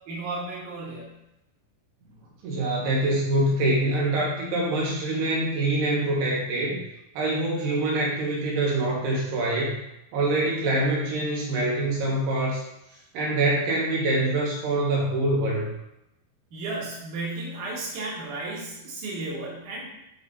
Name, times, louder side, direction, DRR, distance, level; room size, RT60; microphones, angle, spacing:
voice 1, 0.1-1.1 16.5-19.9, right 2 dB, 55° right, -7 dB, 3.3 m, -34 dB
voice 2, 2.4-6.8 7.2-9.8 10.1-12.6 13.1-15.7, right 2 dB, 85° right, -3 dB, 3.5 m, -25 dB
11.0 x 4.1 x 2.6 m, 0.85 s
omnidirectional pair, 4.6 m